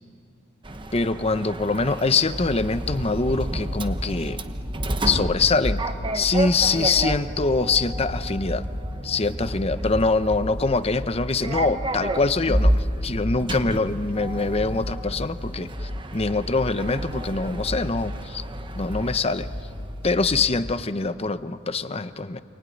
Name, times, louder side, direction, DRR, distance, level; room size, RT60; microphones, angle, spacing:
Sliding door, 0.6-20.2, right 1 dB, 25° right, 1.1 m, -31 dB
voice 1, 0.9-4.4 5.0-5.8 6.1-8.6 9.0-18.4 18.7-19.5 20.0-22.4, left 3 dB, 30° left, 12 dB, 0.8 m, -24 dB
sound 1, 2.3-20.7, left 1 dB, 70° left, 1.6 m, -35 dB
28.0 x 19.5 x 9.9 m, 2.5 s
head